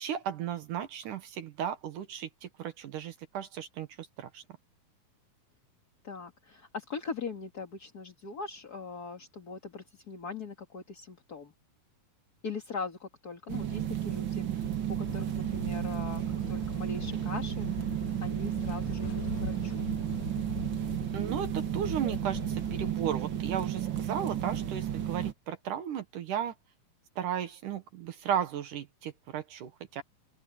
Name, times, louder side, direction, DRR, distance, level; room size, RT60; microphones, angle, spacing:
voice 1, 0.0-4.4 21.1-26.5 27.2-30.0, right 9 dB, 65° right, 2.6 m, -35 dB
voice 2, 6.0-11.5 12.4-14.7 15.0-17.9 18.2-19.9, left 4 dB, 35° left, 1.8 m, -41 dB
sound 1, 13.5-25.3, right 10 dB, 50° right, 1.4 m, -33 dB
sound 2, 15.1-22.9, left 7 dB, 75° left, 3.5 m, -42 dB
open air
omnidirectional pair, 4.2 m